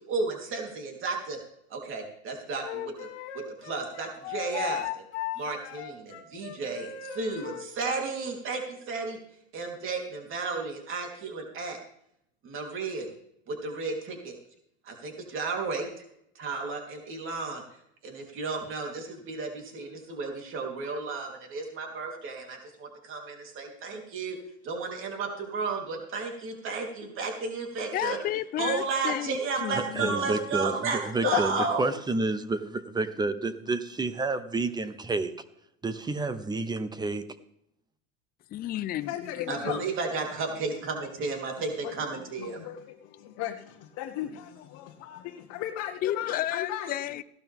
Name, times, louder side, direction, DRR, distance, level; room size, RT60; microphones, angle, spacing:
voice 1, 0.1-1.4 1.7-3.1 3.6-5.0 5.4-9.2 9.5-11.8 12.4-13.1 13.5-14.3 14.8-15.9 16.3-17.6 18.0-24.4 24.6-28.2 28.6-31.8 39.5-42.6, right 4 dB, 35° right, 3.5 m, -33 dB
Wind instrument woodwind instrument, 2.6-7.7, left 11 dB, 80° left, 1.7 m, -37 dB
voice 2, 27.9-30.4 38.5-39.8 46.0-47.2, left 13 dB, 25° left, 0.5 m, -32 dB
voice 3, 29.7-31.5 31.8-35.3 35.8-37.2, right 3 dB, 10° right, 0.8 m, -30 dB
voice 4, 31.2-31.9 39.0-39.8 41.8-41.9 42.4-46.9, left 12 dB, 50° left, 1.2 m, -35 dB
16.0 x 12.0 x 3.6 m
supercardioid pair, 130°, 33 cm